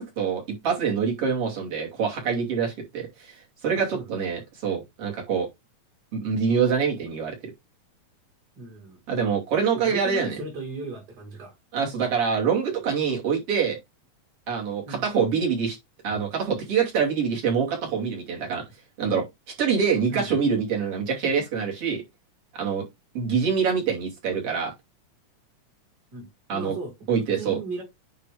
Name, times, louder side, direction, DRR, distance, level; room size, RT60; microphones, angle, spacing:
voice 1, 0.0-5.5 6.1-7.4 9.1-10.4 11.7-13.8 14.5-15.8 16.0-18.6 19.0-19.3 19.6-22.0 22.5-22.9 23.2-24.7 26.5-26.7 27.1-27.6, right 6 dB, 50° right, 3.6 m, -25 dB
voice 2, 3.7-4.1 8.6-9.0 9.8-11.5 14.9-15.1 20.1-20.3 26.1-27.8, right 3 dB, 35° right, 2.7 m, -37 dB
9.4 x 3.4 x 5.0 m
omnidirectional pair, 3.4 m